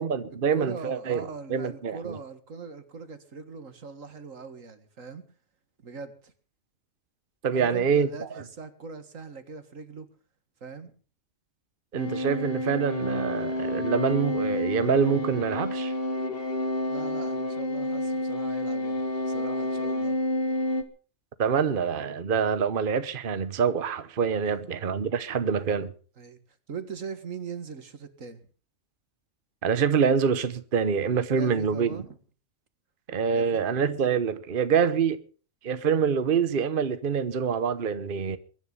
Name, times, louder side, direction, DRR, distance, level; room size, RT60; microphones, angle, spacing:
voice 1, 0.0-2.2 7.4-8.4 11.9-15.9 21.4-25.9 29.6-32.0 33.1-35.2 35.6-38.4, right 6 dB, 45° right, 1.1 m, -26 dB
voice 2, 0.5-5.2 5.8-6.3 7.5-10.1 10.6-10.9 16.9-20.2 24.4-24.8 26.2-26.4 26.7-28.4 31.4-32.2 33.3-33.7, right 5 dB, 85° right, 2.2 m, -41 dB
sound 1, 12.0-20.8, left 1 dB, 45° left, 1.8 m, -29 dB
23.0 x 10.5 x 5.5 m
omnidirectional pair, 1.3 m